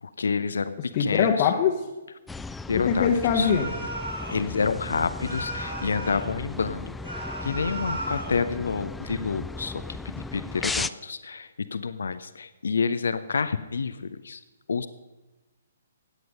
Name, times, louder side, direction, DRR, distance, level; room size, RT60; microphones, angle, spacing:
voice 1, 0.0-1.5 2.7-3.1 3.3-3.5 4.3-6.9 7.4-14.4 14.7-14.9, left 5 dB, 65° left, 13 dB, 0.7 m, -28 dB
voice 2, 0.9-1.9 2.7-3.7, left 7 dB, 35° left, 1 dB, 1.2 m, -22 dB
sound 1, 2.3-10.9, left 3 dB, 5° left, 0.3 m, -36 dB
sound 2, 3.4-4.4 5.2-6.3 7.0-8.4, right 1 dB, 80° right, 4.1 m, -35 dB
16.5 x 9.5 x 5.2 m, 1.1 s
figure-of-eight pair, 130°, 0 cm